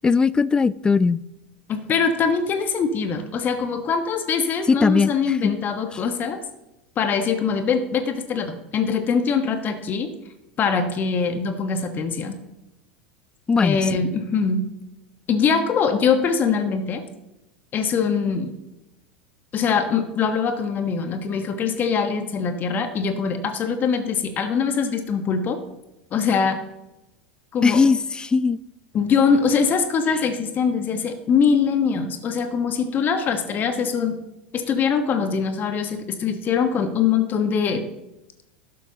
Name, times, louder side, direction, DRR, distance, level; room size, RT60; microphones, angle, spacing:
voice 1, 0.0-1.2 4.7-5.5 13.5-13.8 27.6-28.6, left 5 dB, 15° left, 20 dB, 0.3 m, -19 dB
voice 2, 1.7-6.4 7.0-10.1 10.6-12.4 13.6-14.6 15.3-17.0 17.7-18.5 19.5-25.6 26.1-26.6 27.5-27.8 28.9-34.2 34.5-37.8, left 6 dB, 35° left, 7 dB, 1.2 m, -22 dB
12.0 x 12.0 x 2.9 m, 0.94 s
figure-of-eight pair, 80°, 6 cm